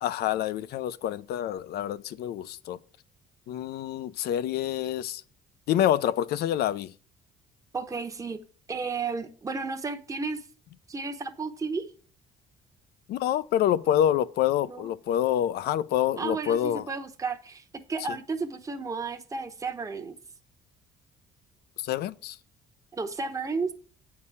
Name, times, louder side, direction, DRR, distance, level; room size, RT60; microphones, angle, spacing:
voice 1, 0.0-2.8 3.5-5.2 5.7-6.9 13.1-16.8 21.8-22.4, left 11 dB, 70° left, 0.6 m, -27 dB
voice 2, 7.7-8.4 8.7-10.4 10.9-11.9 14.7-14.9 16.2-17.6 17.9-20.2 22.9-23.7, right 4 dB, 20° right, 0.9 m, -33 dB
8.6 x 4.8 x 6.9 m
cardioid pair, 110°, 17 cm